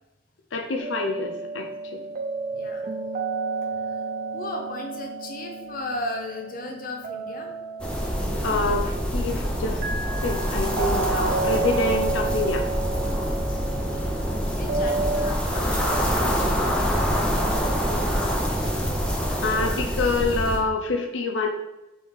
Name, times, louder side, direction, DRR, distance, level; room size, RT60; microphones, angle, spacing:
voice 1, 0.5-2.0 8.4-9.8 10.2-12.6 19.4-21.5, left 3 dB, 85° left, 3 dB, 0.5 m, -26 dB
sound 1, 0.8-15.3, right 4 dB, 50° right, 0.4 m, -31 dB
voice 2, 2.5-2.9 3.8-4.0 4.3-7.5 13.2-13.7 14.0-14.2 14.5-18.4 18.8-18.9, left 2 dB, 50° left, 3 dB, 0.7 m, -37 dB
sound 2, 7.8-20.6, equal, 5° left, 0.5 m, -25 dB
3.8 x 3.7 x 3.4 m, 0.97 s
head